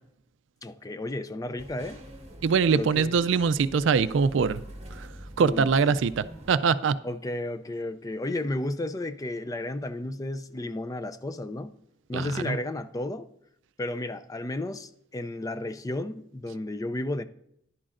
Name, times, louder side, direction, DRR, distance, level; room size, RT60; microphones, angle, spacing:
voice 1, 0.6-2.0 2.7-3.2 5.4-5.7 7.0-11.7 12.1-13.3 13.8-17.2, left 1 dB, 20° left, 0.4 m, -33 dB
sound 1, 1.6-6.6, right 1 dB, 30° right, 1.5 m, -45 dB
voice 2, 2.4-4.6 4.9-5.1 5.4-7.0 12.1-12.6, right 5 dB, 65° right, 0.4 m, -23 dB
13.0 x 11.0 x 2.5 m
head